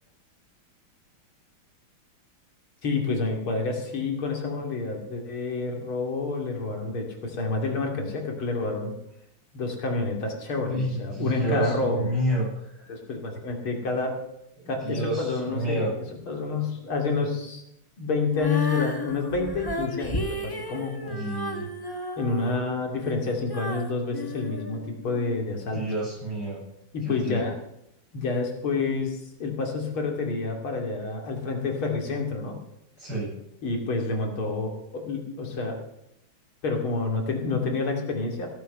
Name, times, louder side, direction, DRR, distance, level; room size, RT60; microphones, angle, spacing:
voice 1, 2.8-9.0 9.5-12.1 12.9-14.2 14.7-17.6 18.0-21.2 22.2-25.8 26.9-27.5 28.1-32.6 33.6-35.8 36.6-38.5, left 3 dB, 90° left, 2 dB, 3.6 m, -28 dB
voice 2, 10.6-12.5 14.8-15.9 21.1-21.7 25.7-26.6 27.1-27.4 33.0-33.3, right 2 dB, 55° right, -5 dB, 8.7 m, -29 dB
Female singing, 18.3-25.4, left 1 dB, 15° left, 1.1 m, -34 dB
16.5 x 9.1 x 6.7 m, 0.81 s
omnidirectional pair, 2.2 m